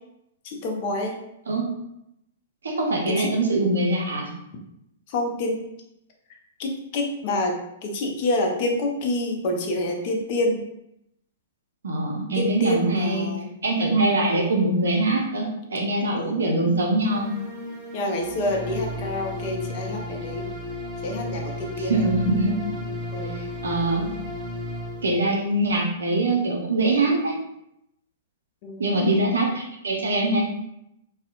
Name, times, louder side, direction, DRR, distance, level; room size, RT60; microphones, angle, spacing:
voice 1, 0.4-1.1 3.1-3.3 5.1-5.6 6.6-10.6 12.3-13.5 16.1-16.4 17.9-20.5 21.0-22.1 23.1-23.4 28.6-29.1, left 1 dB, 45° left, 1 dB, 0.5 m, -27 dB
voice 2, 2.6-4.3 11.8-13.3 13.6-17.3 21.8-22.5 23.6-24.1 25.0-27.4 28.8-30.4, right 2 dB, 70° right, 0 dB, 0.5 m, -23 dB
sound 1, 17.1-25.2, left 1 dB, 5° right, 0.8 m, -33 dB
2.7 x 2.0 x 2.4 m, 0.82 s
figure-of-eight pair, 110°, 0 cm